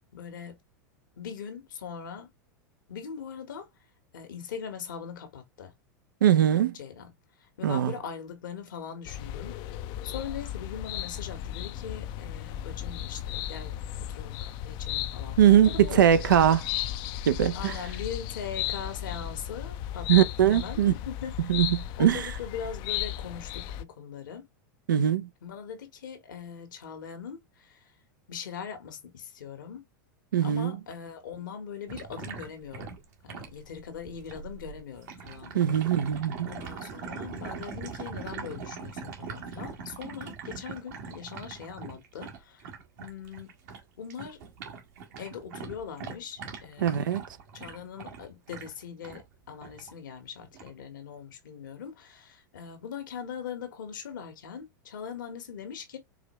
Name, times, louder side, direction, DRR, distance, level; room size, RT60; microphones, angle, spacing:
voice 1, 0.1-0.6 1.2-2.3 2.9-3.7 4.1-5.7 6.7-7.1 7.6-9.6 10.0-16.1 17.5-21.3 22.0-24.5 25.4-27.9 28.3-29.8 30.4-35.8 36.5-42.6 43.0-43.5 44.0-44.4 45.2-47.2 47.5-56.0, left 7 dB, 85° left, 1.3 m, -41 dB
voice 2, 6.2-6.8 7.6-7.9 15.4-16.6 17.3-17.7 20.1-20.9 21.5-21.7 22.0-22.2 24.9-25.3 30.3-30.7 35.5-36.5 46.8-47.2, right 10 dB, 85° right, 0.5 m, -21 dB
sound 1, 9.0-23.8, left 12 dB, 50° left, 0.4 m, -35 dB
sound 2, 31.9-43.8 44.1-49.2 49.6-49.9 50.5-50.7, right 5 dB, 65° right, 1.3 m, -42 dB
4.8 x 2.3 x 3.0 m
hypercardioid pair, 105°, 10 cm